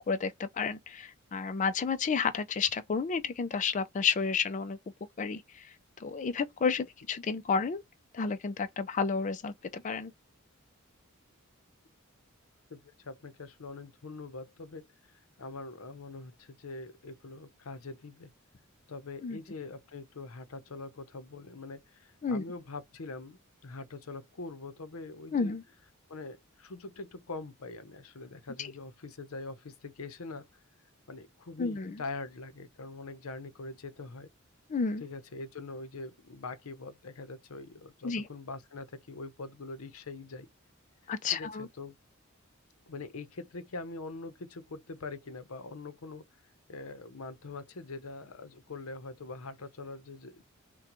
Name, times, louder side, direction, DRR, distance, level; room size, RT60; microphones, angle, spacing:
voice 1, 0.1-4.8 5.2-5.7 6.0-7.8 8.1-10.1 19.2-19.4 22.2-22.4 25.3-25.6 28.6-28.7 31.6-31.9 34.7-35.0 38.0-38.2 41.1-41.7, left 5 dB, 35° left, 0.4 m, -31 dB
voice 2, 12.7-14.8 15.4-18.3 18.9-25.5 26.1-30.5 31.1-34.3 35.0-40.5 41.0-41.9 42.9-46.2 46.7-50.5, left 3 dB, 85° left, 0.7 m, -43 dB
5.8 x 2.2 x 3.0 m
head